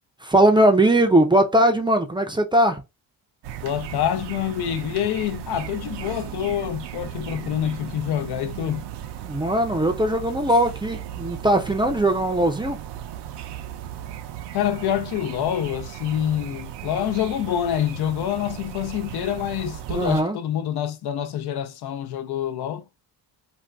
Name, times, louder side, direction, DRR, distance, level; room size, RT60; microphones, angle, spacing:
voice 1, 0.2-2.8 9.2-12.8 19.9-20.4, right 1 dB, 10° right, 0.4 m, -20 dB
sound 1, 3.4-20.2, right 11 dB, 80° right, 0.5 m, -36 dB
voice 2, 3.6-8.8 14.5-22.8, left 10 dB, 70° left, 0.5 m, -26 dB
2.6 x 2.2 x 3.3 m
cardioid pair, 95°, 41 cm